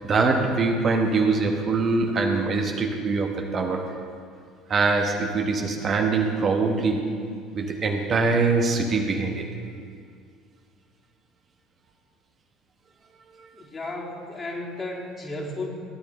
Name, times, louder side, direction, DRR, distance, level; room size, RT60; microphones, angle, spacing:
voice 1, 0.0-3.9 4.7-7.1 7.5-9.4 13.3-13.5, right 4 dB, 40° right, 2 dB, 1.3 m, -23 dB
voice 2, 13.5-15.7, left 2 dB, 25° left, -2 dB, 2.5 m, -34 dB
17.5 x 10.0 x 3.2 m, 2.2 s
figure-of-eight pair, 60°, 0 cm